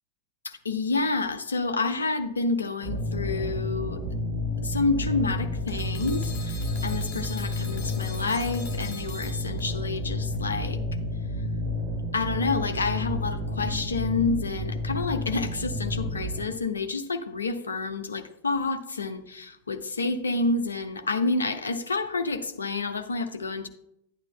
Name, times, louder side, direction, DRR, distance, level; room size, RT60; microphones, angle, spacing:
voice 1, 0.4-4.0 4.6-10.8 12.1-23.7, left 3 dB, 75° left, 8 dB, 0.5 m, -29 dB
sound 1, 2.8-16.4, left 1 dB, 55° right, 2.8 m, -30 dB
sound 2, 5.7-10.0, left 7 dB, 40° left, 2.2 m, -44 dB
11.0 x 9.0 x 2.2 m, 0.79 s
figure-of-eight pair, 90°, 0 cm